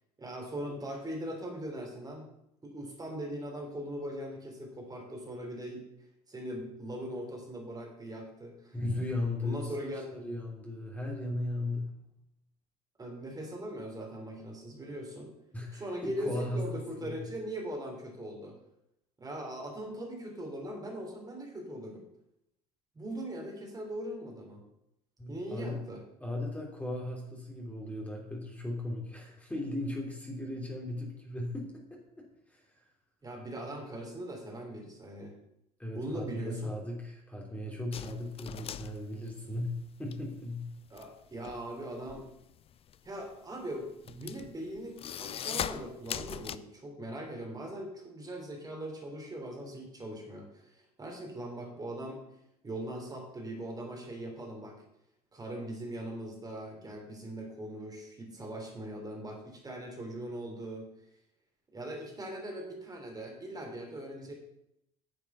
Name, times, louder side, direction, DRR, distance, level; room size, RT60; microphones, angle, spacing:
voice 1, 0.2-2.3 2.6-5.9 6.3-8.8 9.4-10.2 13.0-15.3 15.7-18.6 19.2-22.1 23.0-24.6 25.3-26.0 33.2-35.3 35.9-36.8 40.9-42.3 43.0-52.2 52.6-54.9 55.3-60.9 61.7-64.3, right 1 dB, 20° right, 1 dB, 3.4 m, -40 dB
voice 2, 8.7-9.7 10.1-11.9 15.5-16.7 17.0-17.1 25.2-25.8 26.2-32.0 32.5-32.6 35.8-40.7, left 1 dB, 5° left, -2 dB, 3.2 m, -36 dB
sound 1, 37.9-40.2 40.5-46.6, left 9 dB, 30° left, 0.5 m, -40 dB
10.0 x 7.2 x 7.0 m, 0.81 s
figure-of-eight pair, 65°, 20 cm